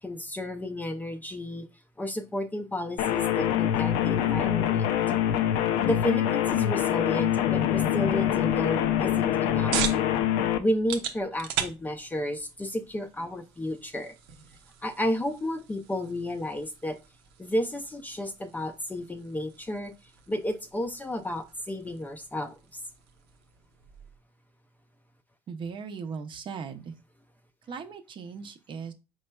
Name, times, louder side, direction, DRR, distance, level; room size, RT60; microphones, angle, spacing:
voice 1, 0.0-1.7 2.0-4.9 5.8-9.7 10.6-14.1 14.8-17.0 17.4-19.9 20.3-22.5, left 1 dB, 15° left, 7 dB, 0.5 m, -32 dB
sound 1, 3.0-10.6, left 10 dB, 75° left, 0.5 m, -25 dB
sound 2, 9.1-24.2, right 9 dB, 90° right, 0.7 m, -40 dB
voice 2, 25.5-26.9 27.7-28.9, right 5 dB, 40° right, 7 dB, 0.6 m, -38 dB
4.5 x 4.2 x 2.2 m, 0.28 s
supercardioid pair, 105°, 13 cm